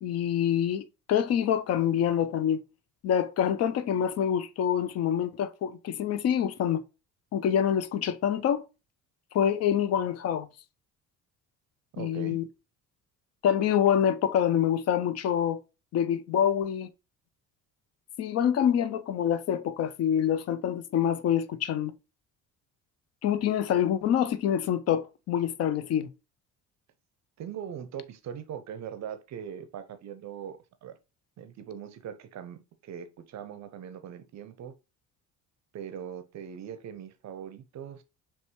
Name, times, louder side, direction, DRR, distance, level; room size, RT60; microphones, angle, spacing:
voice 1, 0.0-2.6 3.0-6.8 7.3-8.7 9.3-10.5 12.0-12.4 13.4-15.6 15.9-16.9 18.2-21.9 23.2-26.1, left 9 dB, 35° left, 0.5 m, -26 dB
voice 2, 11.9-12.4 27.4-31.0 31.4-34.7 35.7-38.0, right 9 dB, 40° right, 0.6 m, -41 dB
5.2 x 3.2 x 3.0 m
figure-of-eight pair, 50°, 46 cm